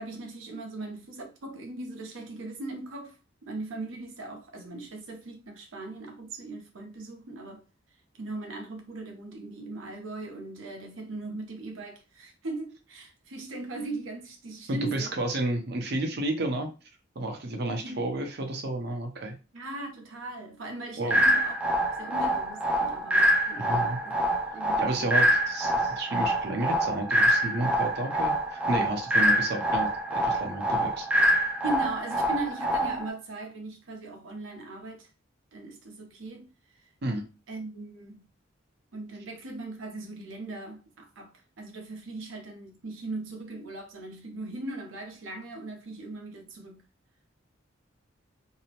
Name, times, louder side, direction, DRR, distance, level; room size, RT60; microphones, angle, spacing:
voice 1, 0.0-3.2 3.4-7.6 8.2-15.1 17.8-18.0 19.5-21.6 22.0-24.2 24.5-25.3 31.6-35.1 35.5-36.5 37.5-38.3 38.9-46.8, right 2 dB, 90° right, 0.7 m, -39 dB
voice 2, 14.7-16.7 17.2-19.4 21.0-21.2 23.6-24.0 24.8-31.1 37.0-37.2, right 2 dB, 55° right, 0.7 m, -31 dB
sound 1, 21.1-33.1, equal, 5° right, 0.3 m, -25 dB
2.7 x 2.0 x 2.8 m
head